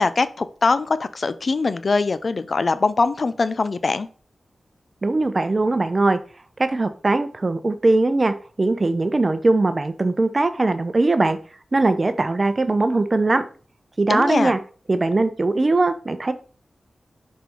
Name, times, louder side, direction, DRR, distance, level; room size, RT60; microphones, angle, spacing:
voice 1, 0.0-4.1 14.1-14.5, left 3 dB, 55° left, 0.5 m, -22 dB
voice 2, 5.0-6.2 6.6-11.4 11.7-13.4 14.0-14.6 14.9-16.3, right 2 dB, 40° right, 0.9 m, -20 dB
6.0 x 5.6 x 4.6 m
wide cardioid pair, 70°, 0 cm